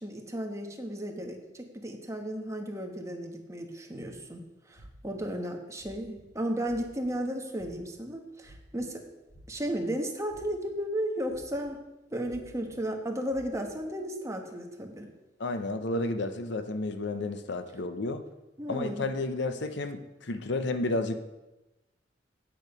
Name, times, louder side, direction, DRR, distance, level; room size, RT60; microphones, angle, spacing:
voice 1, 0.0-9.0 9.5-11.8 12.1-15.1 18.6-19.0, equal, 15° right, 3 dB, 1.2 m, -34 dB
sound 1, 4.0-4.2 4.8-5.2 5.8-6.2 6.6-7.1 7.6-8.0 8.4-8.9 9.3-9.9 10.3-10.7 11.3-11.7 12.3-12.7 13.3-13.7, right 1 dB, 15° left, 2.0 m, -53 dB
voice 2, 15.4-18.2 18.7-21.2, left 2 dB, 65° left, 9 dB, 0.7 m, -31 dB
8.9 x 8.2 x 5.2 m, 1.0 s
head